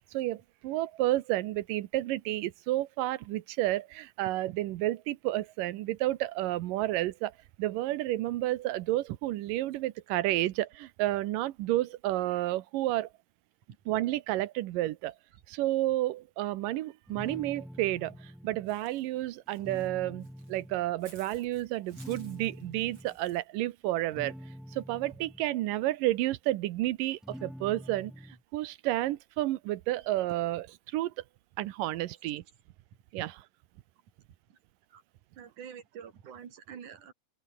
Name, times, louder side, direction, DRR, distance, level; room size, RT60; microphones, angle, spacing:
voice 1, 0.1-13.1 13.9-15.1 15.5-24.3 24.7-31.1 31.6-32.4 33.1-33.4, right 16 dB, 85° right, 2.6 m, -31 dB
sound 1, 17.1-18.8 19.5-20.9 21.9-23.1 24.0-25.5 27.2-28.4, equal, ahead, 1.4 m, -46 dB
Walk footsteps / Bird, 18.7-23.4, right 3 dB, 40° right, 7.4 m, -59 dB
voice 2, 35.4-37.1, right 8 dB, 65° right, 4.1 m, -46 dB
open air
omnidirectional pair, 3.8 m